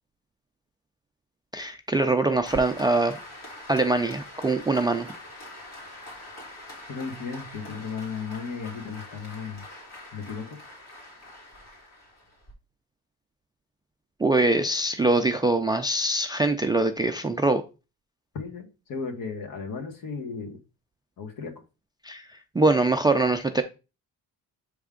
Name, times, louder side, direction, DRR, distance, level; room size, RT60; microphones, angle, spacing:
voice 1, 1.5-3.2 3.7-5.1 14.2-17.6 22.0-22.2 22.6-23.6, right 2 dB, 10° right, 0.3 m, -23 dB
Applause, 2.4-12.5, left 1 dB, 45° left, 2.9 m, -44 dB
voice 2, 6.9-9.6 10.1-10.6 18.3-20.6 21.2-21.5, left 5 dB, 60° left, 1.7 m, -35 dB
8.0 x 3.4 x 3.7 m
cardioid pair, 150°, 37 cm